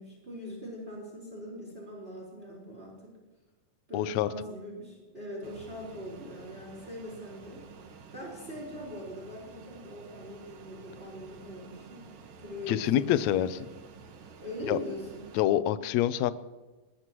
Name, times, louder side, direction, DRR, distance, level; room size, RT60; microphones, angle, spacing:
voice 1, 0.0-3.1 3.9-12.1 12.4-13.4 14.4-15.3, equal, 15° right, -3 dB, 4.4 m, -42 dB
voice 2, 3.9-4.3 12.7-13.6 14.7-14.8 15.3-16.3, left 12 dB, 80° left, 14 dB, 1.6 m, -26 dB
Fixed-wing aircraft airplane, 5.4-15.4, right 5 dB, 75° right, 3.0 m, -50 dB
21.0 x 21.0 x 3.1 m, 1.2 s
omnidirectional pair, 3.9 m